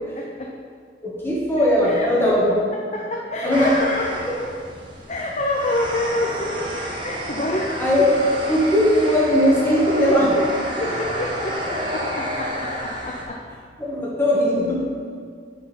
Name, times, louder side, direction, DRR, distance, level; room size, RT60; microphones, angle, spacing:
voice 1, 1.0-2.5 3.4-3.7 7.8-8.2 8.5-10.3 13.8-14.8, equal, 15° left, -5 dB, 1.9 m, -19 dB
voice 2, 2.9-4.1 5.1-7.8 9.9-10.1 10.3-10.4 10.8-11.6 11.9-13.4, left 2 dB, 40° left, -1 dB, 0.6 m, -27 dB
sound 1, 3.5-13.2, equal, 25° right, 1.1 m, -30 dB
9.6 x 4.8 x 5.2 m, 2.1 s
head